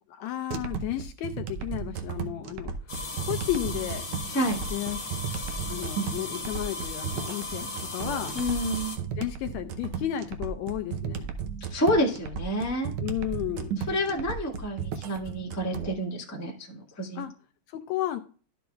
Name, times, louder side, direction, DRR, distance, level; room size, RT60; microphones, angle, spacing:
voice 1, 0.1-2.7 3.2-4.1 4.7-5.1 5.7-8.4 9.2-11.3 13.0-13.8 17.2-17.3 17.7-18.2, left 13 dB, 80° left, 8 dB, 1.8 m, -33 dB
sound 1, 0.5-15.9, right 7 dB, 85° right, 1.1 m, -35 dB
sound 2, 2.9-9.0, left 3 dB, 35° left, 2.8 m, -36 dB
voice 2, 8.3-8.9 11.7-12.9 13.9-17.2, equal, 10° left, -2 dB, 0.9 m, -28 dB
12.0 x 6.1 x 2.3 m, 0.38 s
omnidirectional pair, 3.5 m